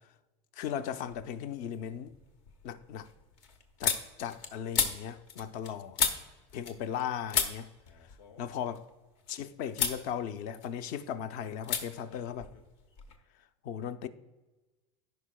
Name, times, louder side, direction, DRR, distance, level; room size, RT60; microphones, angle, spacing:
voice 1, 0.5-2.1 2.6-3.1 3.8-6.0 6.5-7.7 8.4-8.8 9.3-12.5 13.6-14.1, left 8 dB, 55° left, 0.6 m, -37 dB
sound 1, 1.1-1.6 2.0-7.0 7.3-9.3 9.7-10.0 10.4-11.1 11.6-11.8 12.1-13.2, left 6 dB, 75° left, 1.1 m, -34 dB
14.5 x 5.4 x 2.2 m
supercardioid pair, 130°, 15 cm